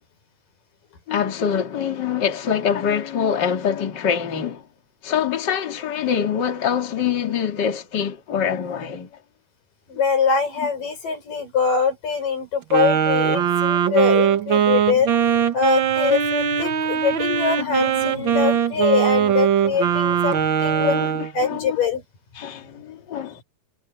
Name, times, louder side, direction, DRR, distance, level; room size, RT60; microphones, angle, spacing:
voice 1, 1.1-4.7 5.0-9.1 17.6-18.6 19.7-19.8 20.8-21.8 22.4-23.4, left 8 dB, 35° left, 2.5 m, -25 dB
voice 2, 9.9-21.0 21.3-22.0, left 5 dB, 85° left, 8.5 m, -23 dB
Wind instrument woodwind instrument, 12.7-21.3, right 8 dB, 55° right, 1.4 m, -20 dB
omnidirectional pair, 3.7 m